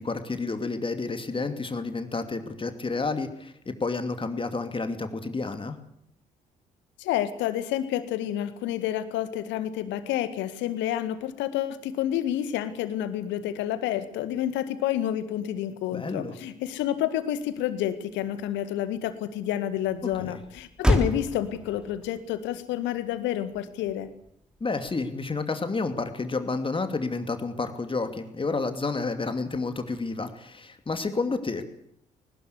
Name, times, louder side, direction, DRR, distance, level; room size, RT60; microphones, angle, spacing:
voice 1, 0.0-5.8 15.9-16.3 20.0-20.4 24.6-31.7, left 3 dB, 25° left, 8 dB, 2.7 m, -30 dB
voice 2, 7.0-24.1, left 11 dB, 60° left, 12 dB, 1.9 m, -29 dB
Motor vehicle (road), 16.7-25.4, left 1 dB, 5° right, 3.8 m, -33 dB
21.0 x 19.5 x 8.4 m, 0.74 s
figure-of-eight pair, 45°, 21 cm